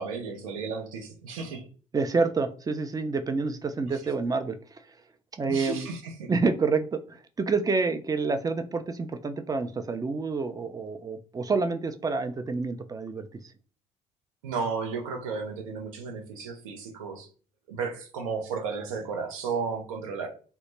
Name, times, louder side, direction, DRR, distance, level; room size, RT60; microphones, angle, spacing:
voice 1, 0.0-1.6 5.5-6.3 14.4-17.3 17.7-20.3, right 5 dB, 85° right, 3 dB, 0.5 m, -33 dB
voice 2, 1.9-5.0 5.4-5.9 6.3-13.4, right 4 dB, 20° right, 9 dB, 0.4 m, -28 dB
2.1 x 2.0 x 3.1 m, 0.40 s
hypercardioid pair, 50°, 17 cm